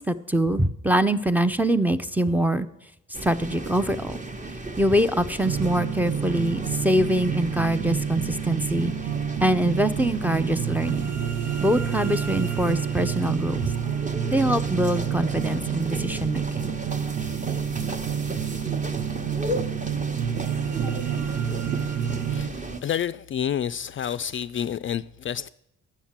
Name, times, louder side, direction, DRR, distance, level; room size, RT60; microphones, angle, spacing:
voice 1, 0.0-2.7 3.2-4.2 4.8-8.9 9.4-11.1 11.6-13.7 14.3-16.7, right 1 dB, 5° right, 0.6 m, -24 dB
sound 1, 3.1-22.8, right 2 dB, 25° right, 1.1 m, -35 dB
sound 2, 5.4-22.5, right 8 dB, 75° right, 1.0 m, -29 dB
voice 2, 22.3-25.5, left 9 dB, 40° left, 0.4 m, -29 dB
10.0 x 7.4 x 7.3 m
cardioid pair, 90°, 30 cm